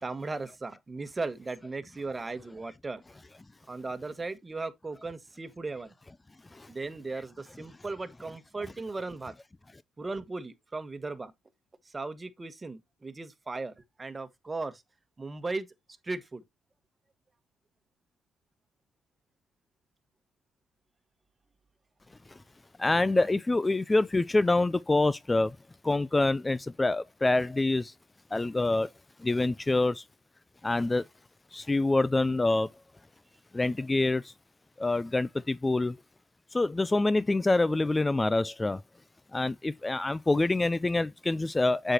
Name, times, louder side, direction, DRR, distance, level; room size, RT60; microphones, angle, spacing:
voice 1, 0.0-3.0 3.7-5.9 6.7-9.3 10.0-11.3 11.8-13.7 14.0-14.8 15.2-15.7 16.0-16.4, right 3 dB, 25° right, 1.5 m, -37 dB
voice 2, 22.8-25.5 25.9-27.8 28.3-28.9 29.3-29.9 30.6-31.0 31.7-32.7 33.6-34.2 34.8-35.3 35.6-35.9 36.6-38.8 39.3-41.9, left 2 dB, 20° left, 0.4 m, -25 dB
7.6 x 6.5 x 2.9 m
supercardioid pair, 55°, 0 cm